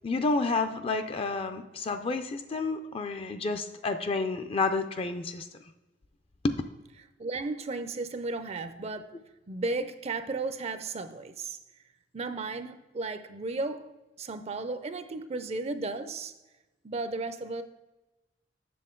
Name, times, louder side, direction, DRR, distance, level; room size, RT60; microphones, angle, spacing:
voice 1, 0.0-5.5 6.4-6.6, left 3 dB, 30° left, 0.4 m, -30 dB
voice 2, 7.2-9.1 9.5-11.6 12.1-13.9 14.2-16.3 16.8-17.6, right 3 dB, 35° right, 0.5 m, -34 dB
7.7 x 6.6 x 3.7 m
head